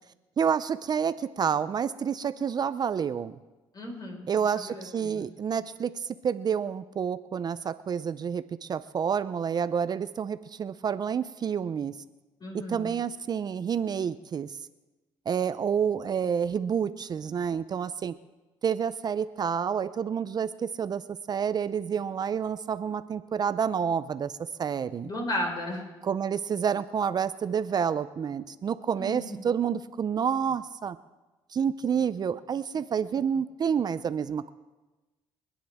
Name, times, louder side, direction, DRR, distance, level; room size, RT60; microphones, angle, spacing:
voice 1, 0.4-3.4 4.3-12.0 12.7-14.6 15.3-18.1 18.6-21.0 21.3-25.1 26.0-31.0 31.5-34.5, right 7 dB, 40° right, 13 dB, 0.5 m, -29 dB
voice 2, 3.7-4.3 4.6-5.3 12.4-12.9 25.0-25.9 29.0-29.4, left 1 dB, 40° left, 0 dB, 4.8 m, -34 dB
29.0 x 10.0 x 3.5 m, 1.2 s
cardioid pair, 90°, 10 cm